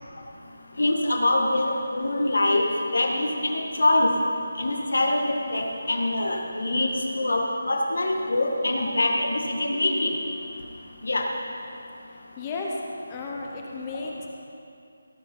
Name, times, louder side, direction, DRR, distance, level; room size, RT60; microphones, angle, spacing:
voice 1, 0.8-2.6 2.9-4.1 4.6-10.1 11.0-11.3, left 2 dB, 85° left, 1 dB, 1.7 m, -24 dB
voice 2, 12.4-12.8 13.1-14.3, left 3 dB, 15° left, -1 dB, 0.8 m, -33 dB
17.5 x 6.7 x 5.6 m, 2.6 s
figure-of-eight pair, 175°, 0 cm